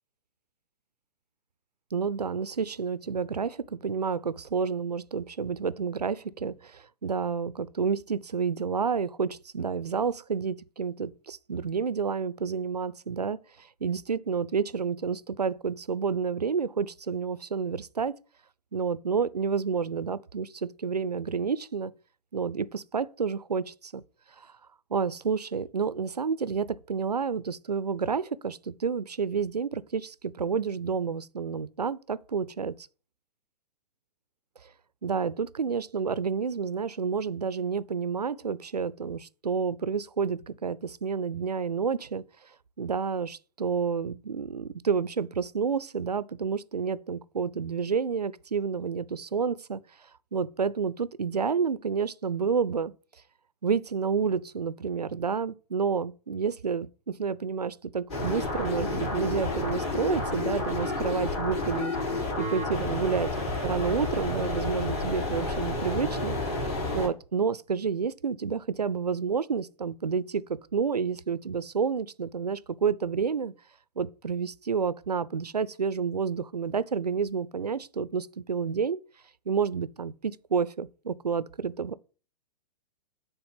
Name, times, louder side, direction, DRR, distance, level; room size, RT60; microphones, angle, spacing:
voice 1, 1.9-18.2 18.7-21.9 22.3-24.0 24.4-24.5 24.9-32.9 34.6-34.7 35.0-42.2 42.8-49.8 50.3-52.9 53.6-63.3 63.6-66.6 66.9-73.5 74.0-79.0 79.5-81.9, right 6 dB, 85° right, 0.4 m, -30 dB
sound 1, 58.1-67.1, left 2 dB, 45° left, 4.1 m, -30 dB
8.0 x 3.4 x 5.7 m
figure-of-eight pair, 105°, 20 cm